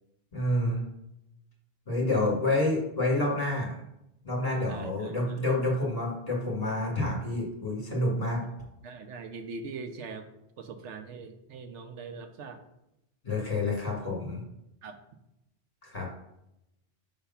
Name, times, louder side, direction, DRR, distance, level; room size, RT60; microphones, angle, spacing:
voice 1, 0.3-0.8 1.9-3.7 4.2-8.4 13.2-14.4 15.8-16.1, left 2 dB, 35° left, -3 dB, 2.0 m, -28 dB
voice 2, 4.6-5.5 8.4-8.5 8.8-10.3 10.6-12.6 14.8-15.0, right 4 dB, 90° right, 7 dB, 1.1 m, -42 dB
5.9 x 3.5 x 5.6 m, 0.86 s
omnidirectional pair, 1.2 m